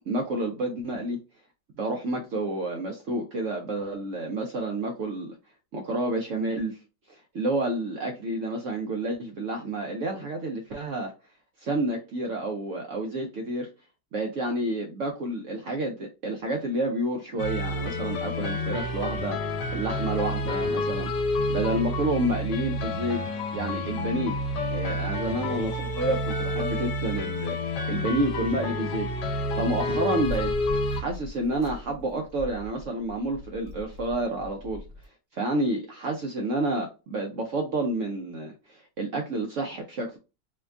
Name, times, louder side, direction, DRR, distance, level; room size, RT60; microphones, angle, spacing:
voice 1, 0.1-1.2 1.8-5.4 5.7-6.8 7.1-11.1 11.6-13.7 14.1-19.4 19.7-23.2 23.5-24.4 24.7-30.5 30.9-34.8 35.3-40.2, right 1 dB, 80° right, 0.6 m, -29 dB
sound 1, 17.4-31.0, left 1 dB, 70° left, 1.2 m, -29 dB
sound 2, 30.2-35.0, left 1 dB, 45° right, 0.8 m, -41 dB
4.8 x 2.2 x 2.4 m
omnidirectional pair, 2.0 m